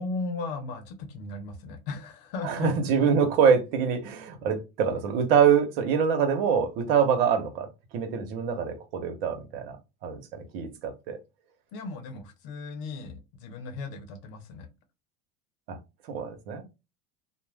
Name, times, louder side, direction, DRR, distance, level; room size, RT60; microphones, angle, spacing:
voice 1, 0.0-3.1 11.7-14.7, left 3 dB, 65° left, 0.9 m, -36 dB
voice 2, 2.4-7.7 7.9-9.8 10.0-11.2 15.7-15.8 16.1-16.6, right 7 dB, 70° right, 0.9 m, -25 dB
2.5 x 2.1 x 3.2 m
supercardioid pair, 105°, 30 cm